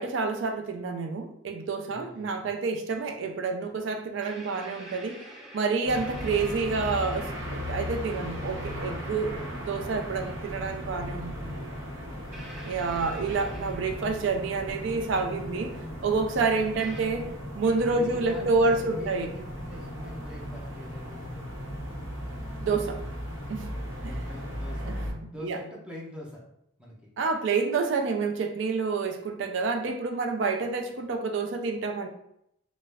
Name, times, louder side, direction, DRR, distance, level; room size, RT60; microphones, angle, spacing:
voice 1, 0.0-5.2 5.5-11.5 12.6-15.8 16.0-17.3 17.5-19.3 22.6-23.0 23.5-23.7 24.0-24.2 24.8-25.6 27.2-32.1, right 4 dB, 65° right, 5 dB, 0.4 m, -28 dB
voice 2, 1.9-2.5 17.9-21.5 24.0-25.0 25.3-26.5 26.8-27.1, equal, 5° right, -3 dB, 0.5 m, -44 dB
sound 1, 2.7-2.8 4.2-7.7 9.0-9.1 10.9-11.0 12.3-14.4 15.8-15.9 16.8-17.0, equal, 35° right, 0.8 m, -46 dB
sound 2, 5.8-25.1, equal, 85° right, 0.8 m, -37 dB
2.3 x 2.0 x 3.3 m, 0.77 s
head